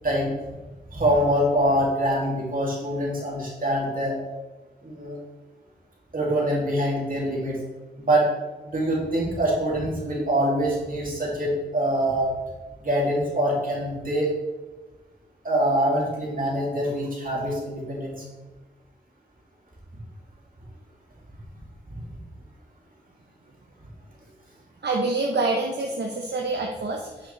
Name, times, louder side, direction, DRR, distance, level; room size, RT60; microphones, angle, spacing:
voice 1, 0.9-4.1 4.8-5.2 6.1-7.5 8.0-8.3 8.6-12.3 12.8-14.3 15.4-18.2, right 1 dB, 50° right, -4 dB, 2.8 m, -24 dB
voice 2, 24.8-27.3, right 3 dB, 70° right, 1 dB, 0.9 m, -26 dB
8.8 x 6.4 x 3.4 m, 1.2 s
wide cardioid pair, 60°, 18 cm